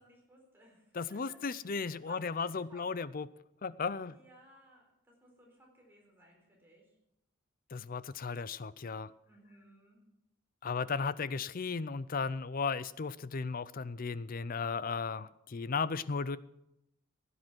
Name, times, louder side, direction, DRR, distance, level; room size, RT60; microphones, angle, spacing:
voice 1, 0.0-1.8 2.1-2.9 4.1-6.9 9.3-10.0, right 1 dB, 10° right, -1 dB, 4.1 m, -60 dB
voice 2, 0.9-3.3 3.6-4.2 7.7-9.1 10.6-16.4, left 5 dB, 40° left, 17 dB, 0.5 m, -35 dB
16.5 x 10.0 x 6.1 m, 0.87 s
head